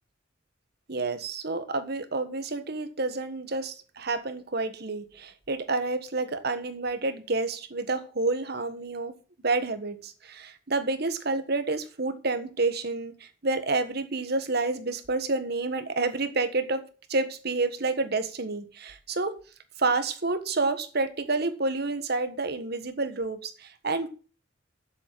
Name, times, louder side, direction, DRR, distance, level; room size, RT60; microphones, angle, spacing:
voice 1, 0.9-9.1 9.4-19.3 19.8-24.1, right 3 dB, 60° right, 1.5 m, -29 dB
7.9 x 7.3 x 7.7 m
head